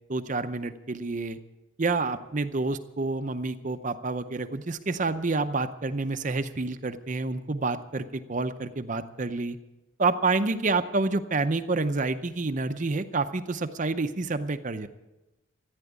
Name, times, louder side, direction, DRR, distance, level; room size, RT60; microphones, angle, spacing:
voice 1, 0.1-1.4 1.8-9.6 10.0-14.9, right 3 dB, 40° right, 9 dB, 0.6 m, -28 dB
14.5 x 9.7 x 8.3 m, 1.0 s
head